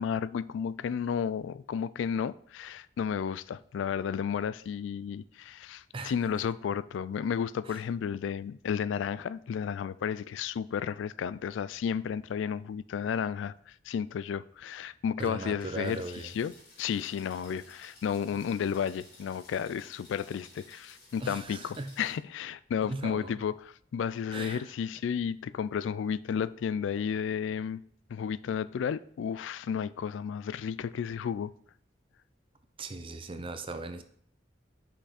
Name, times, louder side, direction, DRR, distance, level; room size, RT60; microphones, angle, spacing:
voice 1, 0.0-16.5 16.8-27.8 28.1-31.5, left 7 dB, 85° left, 0.3 m, -32 dB
voice 2, 15.2-16.3 21.2-21.9 22.8-23.4 24.3-24.7 32.8-34.0, right 2 dB, 30° right, 0.6 m, -38 dB
sound 1, 15.8-22.2, left 2 dB, 55° left, 2.6 m, -55 dB
5.9 x 5.7 x 4.2 m
head